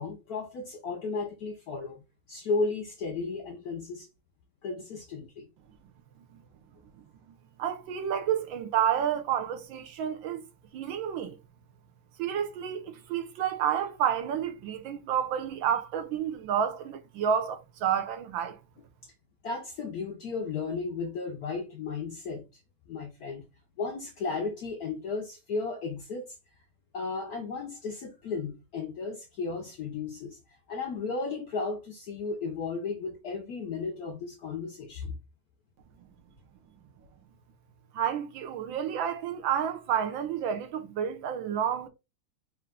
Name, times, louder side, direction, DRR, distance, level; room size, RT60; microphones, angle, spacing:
voice 1, 0.0-4.1 4.6-5.5 19.4-22.4 22.9-23.5 23.8-26.4 26.9-35.2, left 4 dB, 70° left, 0.9 m, -34 dB
voice 2, 7.6-10.4 10.7-11.4 12.2-18.6 37.9-41.9, right 9 dB, 75° right, 1.3 m, -30 dB
4.4 x 2.5 x 3.5 m
omnidirectional pair, 2.3 m